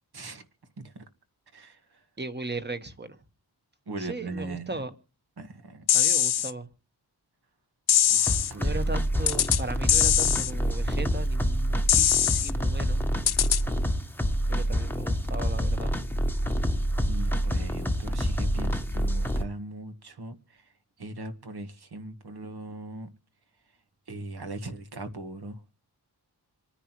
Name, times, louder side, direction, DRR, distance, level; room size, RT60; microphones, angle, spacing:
voice 1, 0.1-0.4 0.8-0.9 1.5-2.0 3.9-4.8 5.4-5.8 8.1-8.9 17.0-20.7 21.0-23.1 24.1-25.6, right 2 dB, 70° right, 1.7 m, -39 dB
voice 2, 2.2-3.2 4.0-4.9 5.9-6.7 8.5-13.0 14.5-16.0, right 2 dB, 25° right, 1.3 m, -37 dB
sound 1, 5.9-6.5 7.9-8.5 9.3-9.6 9.9-10.5 11.9-12.5 13.3-13.6, left 10 dB, 70° left, 0.5 m, -22 dB
sound 2, 8.3-19.4, equal, 5° left, 1.1 m, -27 dB
27.0 x 9.9 x 3.1 m
wide cardioid pair, 95°, 40 cm